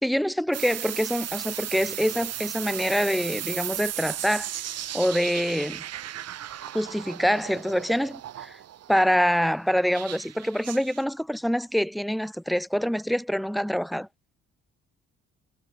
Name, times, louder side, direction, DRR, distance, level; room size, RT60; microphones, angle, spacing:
voice 1, 0.0-4.5 4.9-5.8 6.7-8.6 8.9-14.1, equal, ahead, 0.7 m, -25 dB
sound 1, 0.5-8.9 9.9-11.0, right 11 dB, 45° right, 0.8 m, -35 dB
hypercardioid pair, 50°, 34 cm